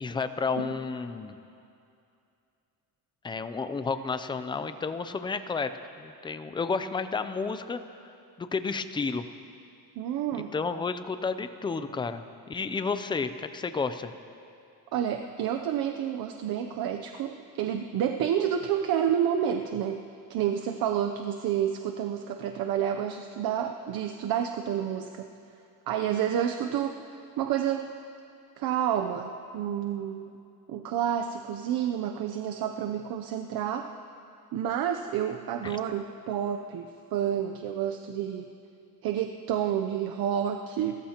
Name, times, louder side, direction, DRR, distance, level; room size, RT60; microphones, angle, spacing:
voice 1, 0.0-1.4 3.2-5.7 6.0-9.2 10.5-14.1 35.6-35.8, left 4 dB, 15° left, 10 dB, 0.4 m, -31 dB
voice 2, 10.0-10.5 14.9-25.3 25.9-27.9 28.6-30.3 30.7-33.9 34.5-38.5 39.0-41.0, right 9 dB, 70° right, 5 dB, 0.7 m, -29 dB
28.5 x 14.5 x 2.9 m, 2.6 s
cardioid pair, 165°, 37 cm